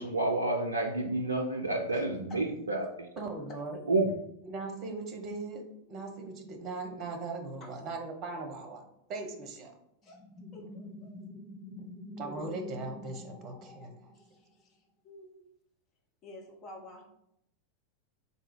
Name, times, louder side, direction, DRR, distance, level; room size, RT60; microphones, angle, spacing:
voice 1, 0.0-3.1 3.9-4.1, right 2 dB, 80° right, 2 dB, 0.4 m, -29 dB
voice 2, 1.9-2.4 7.6-7.7 10.0-10.2 10.5-11.2 14.1-14.8 15.0-15.4 16.2-17.1, left 1 dB, 30° left, 0 dB, 1.0 m, -50 dB
voice 3, 3.2-3.8 4.4-8.8 9.1-9.7 12.2-13.9, right 3 dB, 35° right, 5 dB, 0.9 m, -39 dB
sound 1, 10.0-14.5, left 1 dB, 10° right, 0.6 m, -46 dB
3.7 x 2.8 x 4.5 m, 0.77 s
figure-of-eight pair, 90°, 0 cm